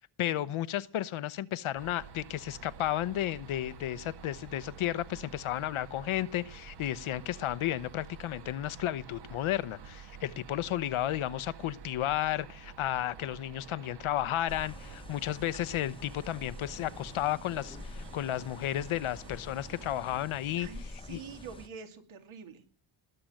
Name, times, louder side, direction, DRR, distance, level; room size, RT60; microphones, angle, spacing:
voice 1, 0.0-20.7 21.1-21.2, left 13 dB, 75° left, 1.0 m, -33 dB
sound 1, 1.8-20.1, right 6 dB, 55° right, 1.5 m, -50 dB
sound 2, 14.5-21.7, left 2 dB, 10° left, 1.0 m, -47 dB
voice 2, 20.6-22.7, right 6 dB, 75° right, 2.8 m, -46 dB
20.5 x 7.9 x 9.0 m
wide cardioid pair, 160°, 49 cm